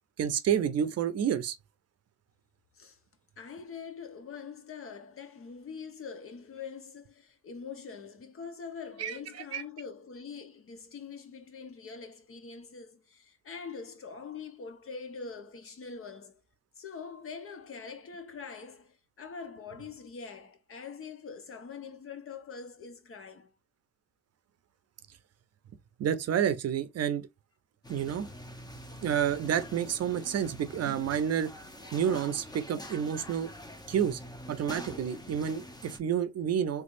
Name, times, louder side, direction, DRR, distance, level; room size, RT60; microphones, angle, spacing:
voice 1, 0.2-1.6 9.0-9.2 9.5-9.6 26.0-27.3 27.9-28.3 29.0-31.5 31.9-33.5 33.9-34.2 34.5-36.8, right 8 dB, 55° right, 0.6 m, -29 dB
voice 2, 3.4-16.4 16.8-23.5, left 5 dB, 45° left, 1.0 m, -44 dB
sound 1, 27.8-36.0, equal, 15° left, 0.8 m, -45 dB
3.3 x 3.3 x 2.5 m
cardioid pair, 90°, 30 cm